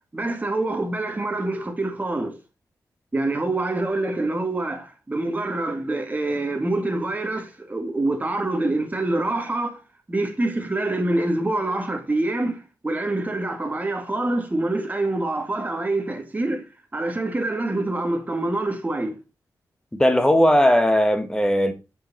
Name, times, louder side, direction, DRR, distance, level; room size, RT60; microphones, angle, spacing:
voice 1, 0.1-2.4 3.1-9.8 10.1-16.7 16.9-19.2, right 2 dB, 25° right, 1.9 m, -26 dB
voice 2, 19.9-21.7, equal, 10° left, 1.4 m, -18 dB
7.5 x 5.6 x 4.2 m
wide cardioid pair, 85°, 7 cm